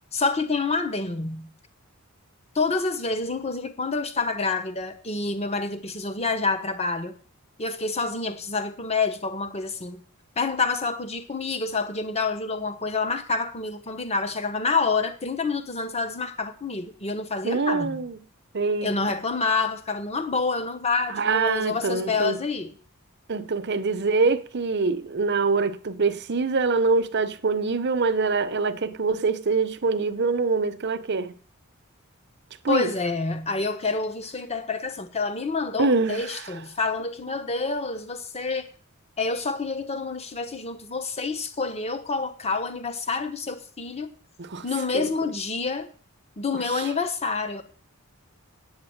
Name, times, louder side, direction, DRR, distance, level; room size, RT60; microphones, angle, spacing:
voice 1, 0.1-1.5 2.5-7.1 7.6-10.0 10.4-18.1 18.8-22.7 32.7-38.7 39.2-44.1 44.6-45.9 46.4-47.6, left 4 dB, 30° left, 1.1 m, -28 dB
voice 2, 17.4-18.2 18.5-18.9 21.1-22.4 23.3-31.4 32.6-32.9 35.8-36.4 44.4-44.6 44.9-45.1 46.7-46.9, right 4 dB, 50° right, 0.8 m, -24 dB
8.8 x 8.6 x 7.9 m
head